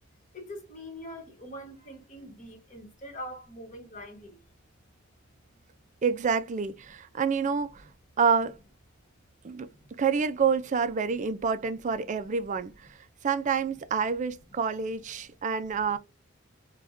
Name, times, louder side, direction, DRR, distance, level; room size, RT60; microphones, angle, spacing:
voice 1, 0.3-4.4 9.6-9.9, equal, 35° left, 1.4 m, -43 dB
voice 2, 6.0-7.8 8.2-8.5 9.4-9.7 10.0-12.9 13.2-16.0, right 6 dB, 40° right, 0.4 m, -27 dB
3.5 x 2.3 x 2.6 m
head